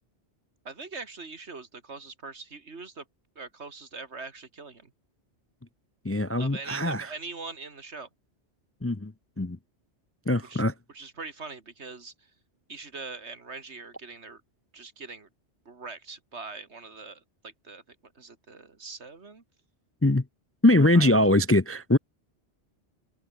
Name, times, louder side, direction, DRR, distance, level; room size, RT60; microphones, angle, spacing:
voice 1, 0.6-3.0 3.4-4.9 6.4-8.1 10.5-10.6 10.9-12.1 12.7-14.4 14.7-15.3 15.7-19.4 20.9-21.1, right 4 dB, 70° right, 2.6 m, -42 dB
voice 2, 6.0-7.1 8.8-9.6 10.3-10.7 20.0-20.2 20.6-22.0, left 1 dB, 15° left, 0.5 m, -22 dB
omnidirectional pair, 1.2 m